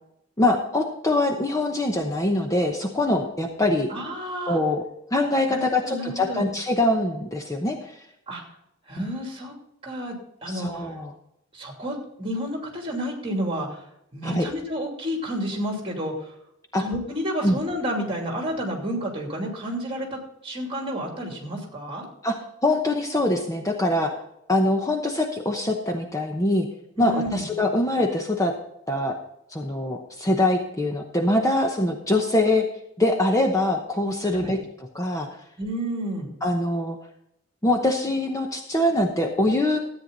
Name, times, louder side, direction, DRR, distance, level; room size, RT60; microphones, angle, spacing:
voice 1, 0.4-3.9 4.5-4.8 5.1-8.0 9.0-9.1 10.5-11.1 14.2-14.5 16.7-16.8 17.4-17.6 22.2-22.4 22.6-24.1 24.5-26.7 27.0-28.5 28.9-29.1 29.5-32.6 33.0-34.6 34.9-35.3 36.4-37.0 37.6-39.8, left 1 dB, 15° left, 2 dB, 0.9 m, -23 dB
voice 2, 3.9-4.6 5.5-6.5 8.3-8.4 8.9-9.5 9.8-10.1 10.4-10.9 11.5-13.9 14.1-16.4 16.8-22.1 27.0-27.5 34.3-34.5 35.6-36.3, equal, 25° right, 1 dB, 2.9 m, -30 dB
13.5 x 9.1 x 4.0 m, 0.78 s
head